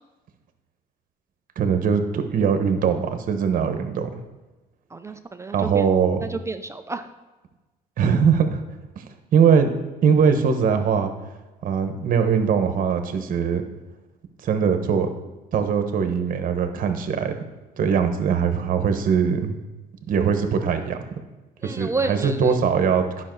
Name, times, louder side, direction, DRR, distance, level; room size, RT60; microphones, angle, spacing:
voice 1, 1.6-4.2 5.5-6.2 8.0-8.6 9.0-9.1 9.3-9.7 10.0-11.1 11.6-13.6 14.4-15.1 15.5-17.3 17.8-19.6 20.1-21.0 21.6-23.2, right 6 dB, 55° right, 7 dB, 1.1 m, -21 dB
voice 2, 4.9-5.9 6.2-7.1 21.6-22.5, right 3 dB, 15° right, 8 dB, 0.4 m, -30 dB
10.0 x 5.9 x 4.6 m, 1.2 s
cardioid pair, 110°, 17 cm